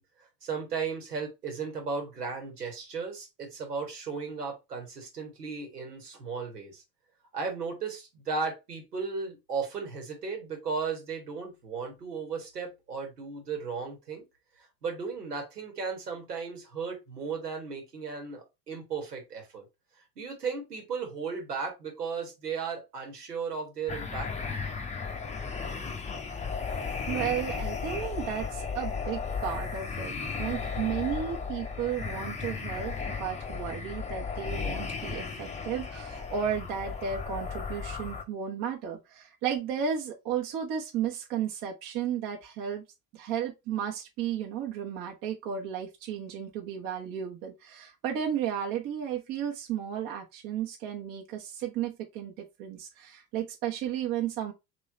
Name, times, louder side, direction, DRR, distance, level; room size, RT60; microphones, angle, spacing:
voice 1, 0.0-6.8 7.3-14.2 14.6-19.6 20.1-24.3, right 5 dB, 85° right, 1.7 m, -35 dB
sound 1, 23.9-38.2, left 5 dB, 15° left, 0.8 m, -35 dB
voice 2, 27.1-42.8 43.1-54.5, right 9 dB, 45° right, 1.3 m, -34 dB
3.8 x 3.2 x 4.1 m
figure-of-eight pair, 75°, 46 cm